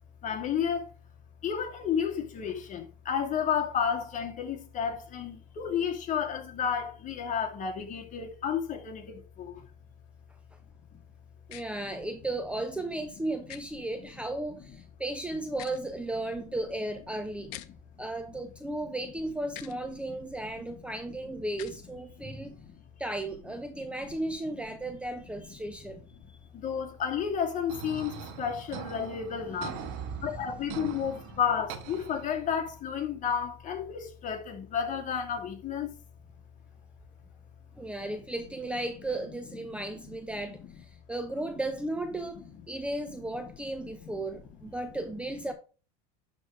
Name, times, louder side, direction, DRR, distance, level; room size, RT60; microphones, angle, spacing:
voice 1, 0.2-0.9 1.4-9.6 20.0-20.1 22.2-22.7 23.7-23.8 24.8-25.0 26.5-35.9 38.1-38.2 39.7-39.8 40.3-40.6 43.8-44.4, left 7 dB, 35° left, 2.4 m, -32 dB
sound 1, 11.5-11.6 13.5-13.6 15.5-15.8 17.5-17.7 19.5-19.8 21.5-21.8, left 14 dB, 60° left, 0.9 m, -44 dB
voice 2, 11.5-17.5 18.0-22.5 23.0-26.0 29.5-30.4 37.8-45.5, right 2 dB, 5° right, 0.7 m, -35 dB
sound 2, 27.7-32.7, right 8 dB, 65° right, 1.5 m, -43 dB
11.5 x 3.9 x 4.9 m
supercardioid pair, 115°, 21 cm